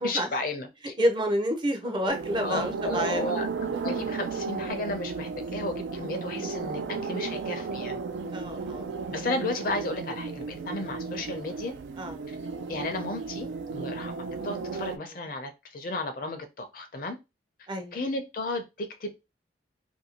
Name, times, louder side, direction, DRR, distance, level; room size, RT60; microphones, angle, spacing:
voice 1, 0.0-0.9 2.0-2.1 2.4-8.0 9.1-11.7 12.3-12.4 12.7-14.2 14.4-17.2 17.9-19.1, left 2 dB, 50° left, 8 dB, 0.5 m, -33 dB
voice 2, 1.0-3.3 8.3-8.9 12.0-12.1 17.7-18.0, equal, 25° right, 6 dB, 0.5 m, -28 dB
sound 1, 2.1-15.0, right 4 dB, 85° right, 0.3 m, -34 dB
2.6 x 2.6 x 2.8 m, 0.24 s
head